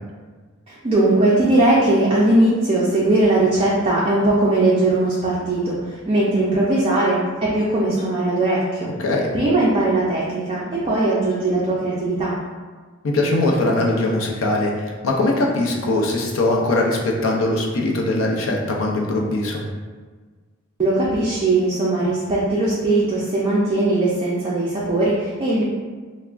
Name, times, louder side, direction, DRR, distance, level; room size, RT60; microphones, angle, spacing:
voice 1, 0.7-8.9 9.3-12.3 20.8-25.6, right 2 dB, 25° right, -7 dB, 0.3 m, -19 dB
voice 2, 13.0-19.6, left 2 dB, 75° left, -1 dB, 0.5 m, -21 dB
3.4 x 2.0 x 2.3 m, 1.5 s
head